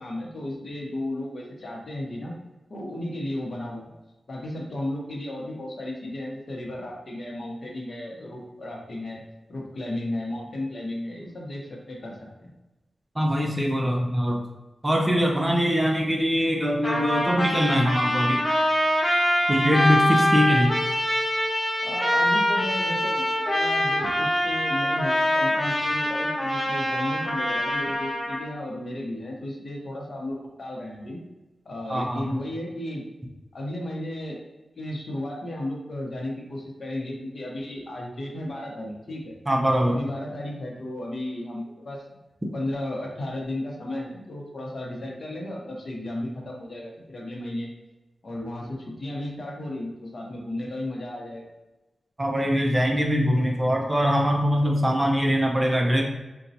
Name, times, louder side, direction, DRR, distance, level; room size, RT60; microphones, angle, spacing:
voice 1, 0.0-2.3 2.7-3.9 4.3-9.2 9.5-12.5 21.8-31.2 31.6-33.1 33.5-34.4 34.7-39.3 39.8-42.0 42.5-47.7 48.2-51.5, left 1 dB, 55° left, -2 dB, 0.7 m, -34 dB
voice 2, 13.2-14.4 14.8-18.4 19.5-20.8 31.9-32.4 39.5-40.0 52.2-56.0, equal, 20° right, 1 dB, 0.4 m, -22 dB
Trumpet, 16.8-28.5, equal, 25° left, 1.0 m, -24 dB
4.0 x 2.2 x 2.6 m, 1.1 s
wide cardioid pair, 140°, 0 cm